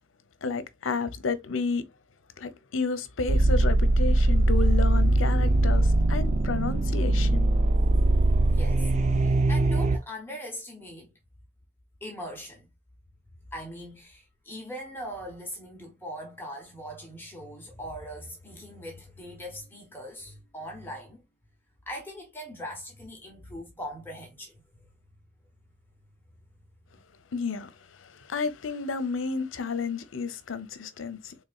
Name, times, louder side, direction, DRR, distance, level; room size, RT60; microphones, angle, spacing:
voice 1, 0.4-1.8 2.4-7.5 27.3-31.3, left 4 dB, 85° left, 0.6 m, -31 dB
sound 1, 3.3-10.0, right 2 dB, 35° right, 0.3 m, -22 dB
voice 2, 8.5-8.9 9.2-11.1 12.0-12.7 13.5-21.2 21.9-24.5, equal, 10° left, 1.0 m, -40 dB
4.1 x 3.4 x 2.3 m
head